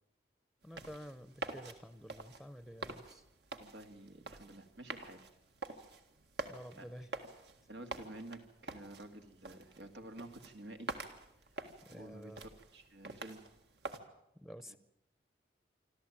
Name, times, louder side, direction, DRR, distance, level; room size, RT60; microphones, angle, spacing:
voice 1, 0.6-3.2 6.5-7.1 11.9-12.4 14.4-14.8, equal, ahead, 13 dB, 0.7 m, -50 dB
sound 1, 0.6-14.0, right 3 dB, 75° right, 1.9 m, -47 dB
voice 2, 3.6-5.3 6.8-6.9 7.7-10.9 11.9-13.4 14.7-14.8, right 1 dB, 90° right, 6 dB, 2.1 m, -50 dB
26.0 x 13.5 x 8.8 m, 0.85 s
head